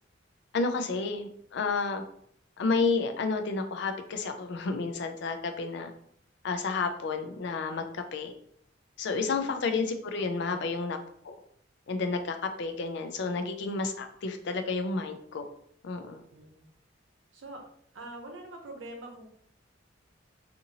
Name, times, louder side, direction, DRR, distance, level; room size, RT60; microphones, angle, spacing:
voice 1, 0.5-2.0 2.6-5.9 6.4-8.3 9.0-11.0 11.2-11.3 11.9-15.5 15.8-16.2, left 4 dB, 65° left, 7 dB, 0.4 m, -31 dB
voice 2, 9.2-9.9 10.2-10.6 16.3-16.6 17.3-17.6 17.9-19.3, right 1 dB, 90° right, 2 dB, 0.7 m, -45 dB
2.7 x 2.5 x 2.8 m, 0.65 s
head